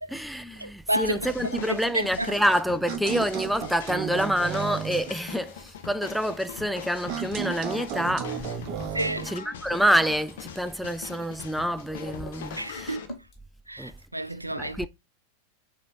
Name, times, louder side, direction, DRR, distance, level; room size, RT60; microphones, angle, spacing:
voice 1, 0.1-8.5 9.2-13.0 13.8-13.9 14.5-14.9, equal, ahead, 0.3 m, -27 dB
voice 2, 0.6-2.3 8.9-9.3 12.6-13.2 13.7-14.9, right 1 dB, 85° right, 0.3 m, -31 dB
sound 1, 1.2-13.1, left 8 dB, 60° left, 0.7 m, -42 dB
sound 2, 2.2-13.3, left 3 dB, 25° left, 1.8 m, -51 dB
sound 3, 2.9-5.1 7.1-9.3, right 8 dB, 40° right, 0.8 m, -33 dB
6.7 x 2.9 x 2.6 m
figure-of-eight pair, 90°, 0 cm